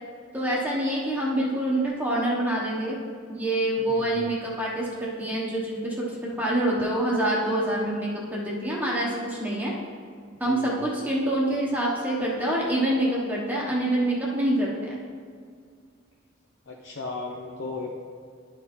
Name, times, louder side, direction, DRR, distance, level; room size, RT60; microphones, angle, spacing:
voice 1, 0.3-3.0 3.3-9.7 10.4-15.0, right 1 dB, 10° right, -5 dB, 1.1 m, -26 dB
voice 2, 3.9-4.3 10.5-10.8 16.7-17.9, left 3 dB, 75° left, -2 dB, 0.7 m, -36 dB
10.5 x 4.4 x 4.2 m, 2.1 s
head